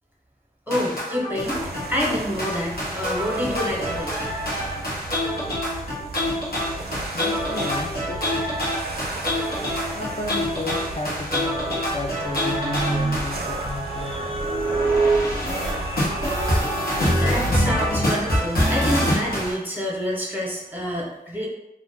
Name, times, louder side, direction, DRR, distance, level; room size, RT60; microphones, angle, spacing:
sound 1, 0.7-13.4 14.4-19.6, equal, 75° left, 0.9 m, -26 dB
voice 1, 0.7-1.6 1.9-4.2 17.1-21.5, equal, 10° right, -3 dB, 0.9 m, -27 dB
sound 2, 1.4-19.5, right 2 dB, 90° right, 0.4 m, -36 dB
voice 2, 7.1-8.5 8.9-11.7 11.9-14.5, left 3 dB, 35° left, -1 dB, 0.3 m, -34 dB
sound 3, 12.1-17.3, right 3 dB, 35° right, 0.5 m, -26 dB
2.4 x 2.2 x 3.5 m, 0.89 s
wide cardioid pair, 45°, 16 cm